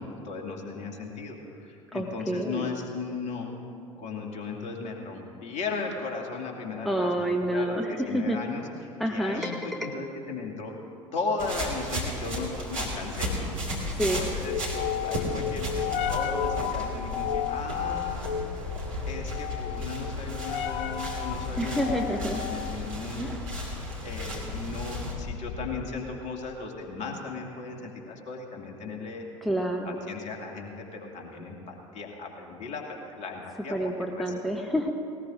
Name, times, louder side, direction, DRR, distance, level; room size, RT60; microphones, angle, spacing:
voice 1, 0.0-3.6 4.0-10.7 11.1-29.3 29.9-33.7 34.1-34.2, left 4 dB, 45° left, 1 dB, 2.3 m, -36 dB
voice 2, 1.9-2.7 6.8-8.4 9.0-10.0 13.9-14.2 21.6-22.4 23.2-23.4 29.4-30.0 33.7-34.9, right 1 dB, ahead, 3 dB, 0.9 m, -28 dB
sound 1, 11.4-25.1, right 1 dB, 80° right, 2.4 m, -36 dB
sound 2, 12.8-26.0, left 7 dB, 60° left, 0.9 m, -33 dB
19.0 x 19.0 x 2.6 m, 2.6 s
figure-of-eight pair, 65°, 17 cm